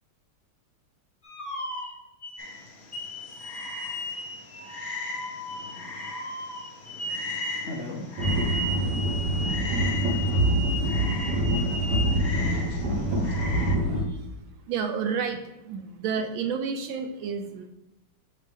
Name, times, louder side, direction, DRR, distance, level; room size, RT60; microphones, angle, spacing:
sound 1, 1.2-2.4 2.9-7.7 8.2-12.2, left 1 dB, 30° left, 0.6 m, -36 dB
Frog, 2.4-13.8, left 3 dB, 55° left, 1.1 m, -39 dB
voice 1, 5.5-6.1 6.8-9.6, left 2 dB, 85° left, 0.5 m, -42 dB
sound 2, 8.2-14.0, right 1 dB, 55° right, 1.5 m, -25 dB
voice 2, 13.9-17.7, right 6 dB, 75° right, 1.3 m, -31 dB
6.3 x 4.2 x 3.5 m
omnidirectional pair, 2.4 m